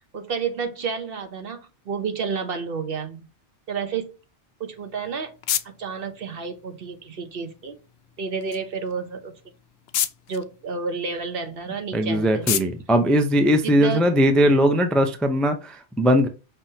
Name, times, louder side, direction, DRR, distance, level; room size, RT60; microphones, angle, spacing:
voice 1, 0.1-3.3 3.7-4.1 4.6-5.3 5.6-7.8 8.2-9.3 10.3-12.6 13.6-14.1, right 5 dB, 55° right, 1.0 m, -30 dB
sound 1, 4.7-14.1, left 10 dB, 70° left, 0.7 m, -34 dB
voice 2, 11.9-16.3, equal, ahead, 0.4 m, -19 dB
5.6 x 3.2 x 2.8 m
omnidirectional pair, 1.2 m